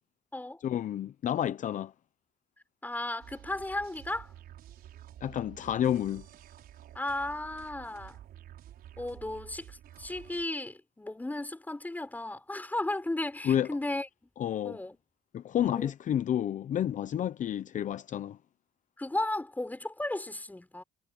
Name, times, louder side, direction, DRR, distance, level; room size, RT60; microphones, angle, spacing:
voice 1, 0.6-1.9 5.2-6.3 13.4-13.7 14.4-14.8 15.3-18.4, left 10 dB, 50° left, 0.7 m, -30 dB
voice 2, 2.8-4.3 6.9-8.2 9.0-14.1 14.6-15.0 15.7-15.9 17.2-17.3 19.0-20.8, left 2 dB, 10° left, 5.8 m, -35 dB
sound 1, 3.2-10.5, right 11 dB, 65° right, 5.3 m, -50 dB
cardioid pair, 110°, 17 cm